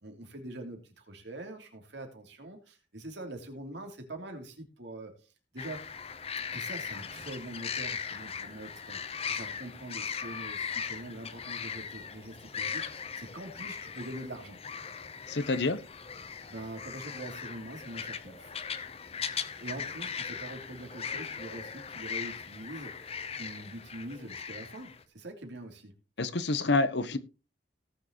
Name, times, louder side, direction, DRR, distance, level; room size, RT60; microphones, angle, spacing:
voice 1, 0.0-5.1 5.5-5.8 6.5-14.6 16.5-18.5 19.6-25.9, right 1 dB, 65° right, 3.1 m, -44 dB
sound 1, 5.6-25.0, left 6 dB, 30° left, 0.8 m, -39 dB
voice 2, 15.3-15.8 26.2-27.2, left 3 dB, 65° left, 1.0 m, -27 dB
18.0 x 6.6 x 3.0 m
head